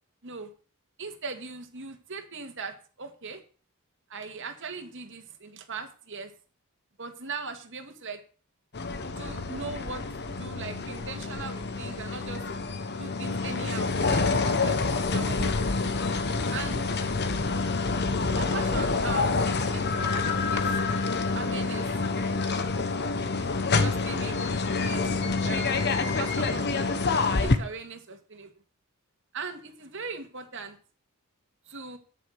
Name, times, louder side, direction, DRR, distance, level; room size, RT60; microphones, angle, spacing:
voice 1, 1.0-3.4 4.1-6.3 7.0-8.2 9.2-12.4 13.0-15.7 16.5-16.9 18.3-20.7 21.3-21.9 23.8-24.5 24.8-25.8 26.0-26.9 27.4-28.5 29.3-30.8 31.7-32.0, right 4 dB, 55° right, 6 dB, 2.1 m, -39 dB
sound 1, 8.7-27.6, left 3 dB, 50° left, 1.2 m, -27 dB
10.0 x 9.2 x 6.6 m, 0.40 s
head